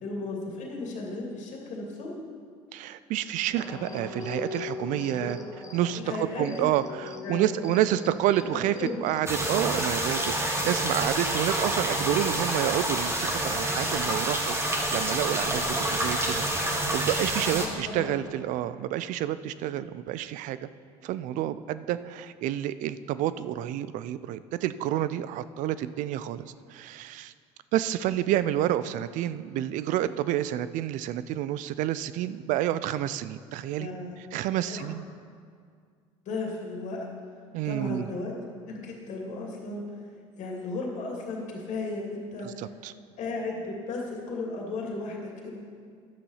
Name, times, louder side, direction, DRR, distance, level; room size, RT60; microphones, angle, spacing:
voice 1, 0.0-2.1 5.2-5.3 5.9-6.7 7.2-7.5 8.4-9.0 17.5-18.2 33.8-34.2 34.7-34.9 36.3-37.1 37.6-38.3 38.7-39.8 40.3-42.7 43.2-45.6, left 3 dB, 60° left, -1 dB, 2.5 m, -35 dB
voice 2, 2.7-5.4 5.7-20.6 21.0-26.4 26.7-27.3 27.7-33.9 34.3-35.0 37.5-38.1 42.4-42.9, right 12 dB, 65° right, 14 dB, 0.5 m, -29 dB
sound 1, 3.5-10.9, left 4 dB, 20° left, 1.3 m, -41 dB
sound 2, 9.3-17.7, right 1 dB, 20° right, 1.9 m, -28 dB
11.5 x 6.8 x 5.6 m, 2.1 s
supercardioid pair, 80°, 14 cm